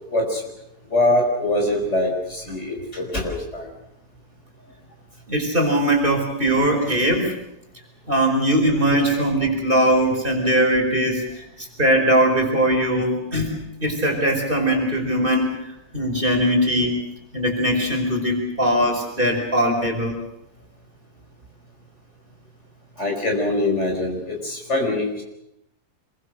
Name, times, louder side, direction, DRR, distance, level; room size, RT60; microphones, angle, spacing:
voice 1, 0.1-0.4 0.9-3.7 23.0-25.2, left 1 dB, 45° left, 1 dB, 5.8 m, -23 dB
voice 2, 5.3-7.3 8.1-13.6 13.8-15.6 15.9-17.0 17.3-20.2, right 1 dB, 30° right, 1 dB, 5.2 m, -20 dB
26.5 x 23.5 x 6.6 m, 0.82 s
omnidirectional pair, 1.7 m